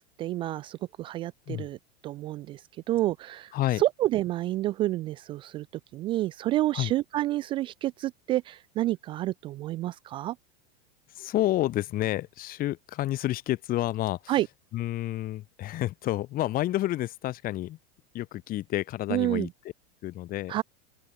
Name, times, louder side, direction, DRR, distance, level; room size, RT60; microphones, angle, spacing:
voice 1, 0.0-1.8 2.0-2.6 2.9-3.5 3.8-5.7 5.9-10.4 14.3-14.5 19.1-19.5 20.5-20.6, right 15 dB, 15° right, 0.3 m, -29 dB
voice 2, 3.5-3.8 6.7-6.9 11.1-14.4 14.7-17.8 18.1-19.5 20.0-20.5, left 15 dB, 25° left, 2.0 m, -29 dB
open air
supercardioid pair, 165°, 32 cm